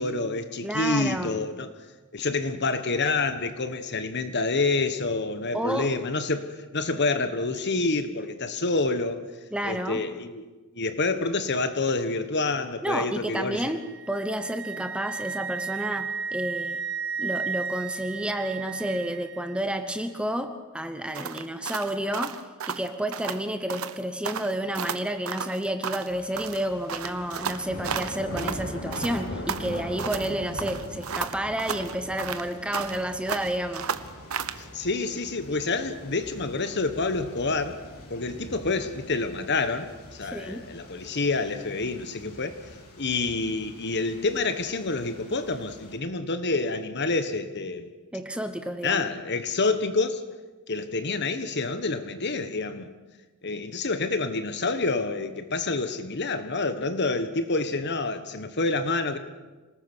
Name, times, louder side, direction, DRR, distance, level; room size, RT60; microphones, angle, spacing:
voice 1, 0.0-1.7 2.1-6.5 6.7-9.3 9.6-10.5 10.7-13.7 34.5-37.8 38.1-42.6 43.0-47.9 48.8-50.2 50.7-52.9 53.4-59.2, left 3 dB, 50° left, 1.4 m, -28 dB
voice 2, 0.6-1.4 5.5-5.9 9.5-10.0 12.8-16.8 17.2-22.4 22.7-33.9 40.3-40.7 48.1-49.0, right 1 dB, 5° right, 1.0 m, -30 dB
Wind instrument woodwind instrument, 13.6-19.6, right 6 dB, 55° right, 1.3 m, -34 dB
sound 1, 21.1-23.4 23.7-24.0 24.2-26.1 26.4-28.6 28.9-30.3 30.6-33.0 33.3-34.6, right 6 dB, 75° right, 1.0 m, -33 dB
sound 2, 26.1-46.0, left 1 dB, 90° left, 4.2 m, -42 dB
26.5 x 19.5 x 6.3 m
head